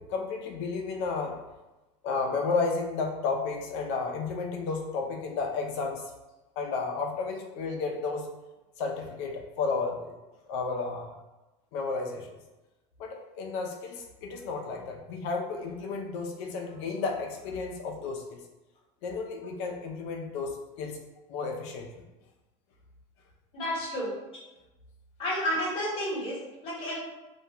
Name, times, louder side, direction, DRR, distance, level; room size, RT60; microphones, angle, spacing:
voice 1, 0.0-1.4 2.0-6.1 6.6-8.3 8.8-10.1 10.5-11.1 11.7-12.3 13.0-18.4 19.0-21.0 21.3-21.9, left 4 dB, 70° left, 2 dB, 0.5 m, -32 dB
voice 2, 23.5-24.1 25.2-26.9, equal, 40° left, -6 dB, 1.0 m, -31 dB
2.4 x 2.2 x 2.8 m, 1.1 s
supercardioid pair, 145°, 16 cm